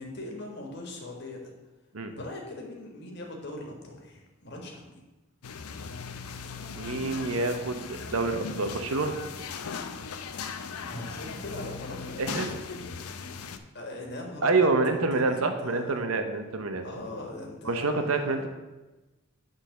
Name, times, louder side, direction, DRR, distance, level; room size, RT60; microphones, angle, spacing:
voice 1, 0.0-1.5 2.1-5.0 10.8-12.3 13.7-16.0 16.8-18.5, left 1 dB, 50° left, 1 dB, 1.6 m, -40 dB
sound 1, 5.4-13.6, left 5 dB, 90° left, 0.6 m, -38 dB
voice 2, 6.7-9.2 12.2-12.5 14.4-16.9 17.7-18.5, right 3 dB, 75° right, 6 dB, 0.9 m, -27 dB
8.8 x 4.0 x 6.7 m, 1.1 s
head